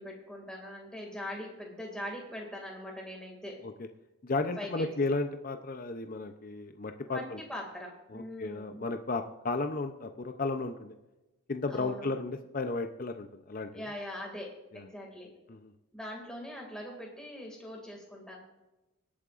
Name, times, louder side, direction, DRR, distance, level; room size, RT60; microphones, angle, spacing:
voice 1, 0.0-3.6 4.6-4.9 7.1-8.9 11.7-12.1 13.7-15.3 15.9-18.4, left 1 dB, 5° left, -1 dB, 2.1 m, -42 dB
voice 2, 4.2-7.4 8.1-10.9 11.5-13.9 14.7-14.8 15.5-15.7, left 3 dB, 40° left, 7 dB, 0.5 m, -34 dB
25.0 x 8.6 x 2.5 m, 1.0 s
head